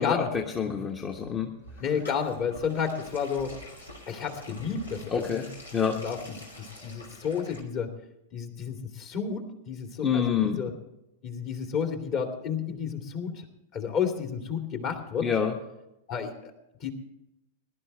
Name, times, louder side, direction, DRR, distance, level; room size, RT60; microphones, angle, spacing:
voice 1, 0.0-1.5 5.1-5.5 5.7-6.0 10.0-10.6 15.2-15.5, left 7 dB, 25° left, 2 dB, 1.3 m, -27 dB
sound 1, 1.3-7.6, left 1 dB, 85° left, 2.8 m, -46 dB
voice 2, 1.8-3.5 4.1-5.5 5.9-6.2 6.6-7.9 8.3-10.7 11.2-13.4 13.7-15.3 16.1-16.5 16.8-16.9, left 6 dB, 40° left, 4 dB, 2.6 m, -31 dB
20.5 x 12.0 x 3.3 m, 0.91 s
figure-of-eight pair, 95°, 0 cm